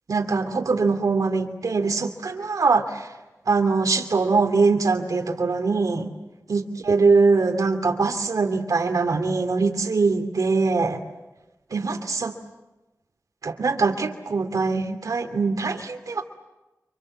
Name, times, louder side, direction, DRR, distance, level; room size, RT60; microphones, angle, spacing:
voice 1, 0.1-3.1 3.5-6.1 6.5-11.0 11.7-12.3 13.4-16.2, right 4 dB, 90° right, 4 dB, 2.6 m, -22 dB
30.0 x 25.5 x 7.7 m, 1.0 s
wide cardioid pair, 70°, 6 cm